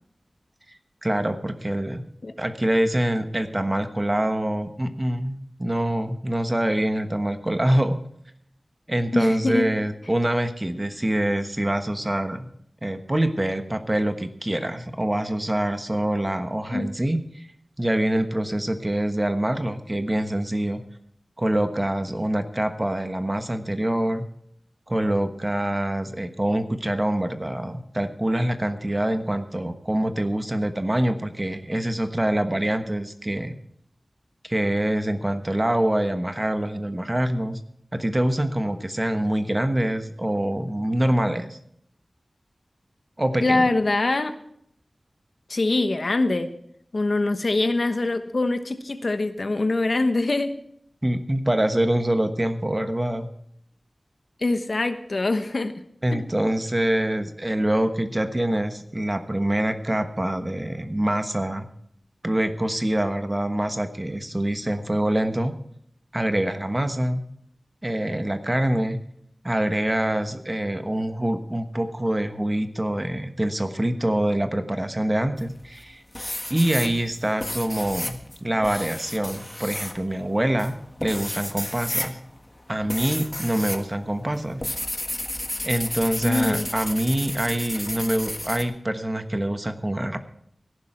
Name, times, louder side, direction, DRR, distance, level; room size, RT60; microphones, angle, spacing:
voice 1, 0.7-2.0 2.4-8.0 8.9-12.5 12.8-17.5 17.8-20.8 21.4-24.2 24.9-33.5 34.4-37.6 37.9-41.6 43.2-43.7 51.0-53.3 56.0-61.7 62.2-65.5 66.1-67.2 67.8-69.0 69.4-76.0 76.5-80.7 81.0-82.2 82.7-84.6 85.6-90.2, right 1 dB, 25° right, 8 dB, 1.2 m, -25 dB
voice 2, 9.1-9.7 16.7-16.9 43.4-44.3 45.5-46.5 46.9-50.5 54.4-55.7 56.1-56.3 86.2-86.7, left 2 dB, 65° left, 9 dB, 1.1 m, -23 dB
sound 1, 75.4-75.8 76.1-83.8 84.1-88.6, left 1 dB, 25° left, 1.5 m, -32 dB
17.5 x 11.0 x 4.4 m, 0.69 s
wide cardioid pair, 60°, 0 cm